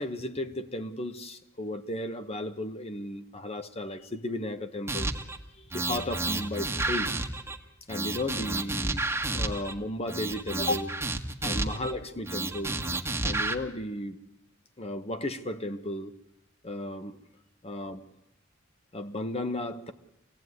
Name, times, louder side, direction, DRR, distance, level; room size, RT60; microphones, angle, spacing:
voice 1, 0.0-5.1 5.6-7.1 7.9-10.9 11.4-12.8 13.2-14.2 14.8-16.1 16.6-17.2 17.6-18.0 18.9-19.9, left 1 dB, 30° left, 1.2 m, -34 dB
sound 1, 4.9-5.4 5.7-7.6 7.9-9.7 10.1-11.9 12.3-13.6, right 2 dB, 15° right, 1.6 m, -31 dB
26.0 x 17.5 x 9.6 m
head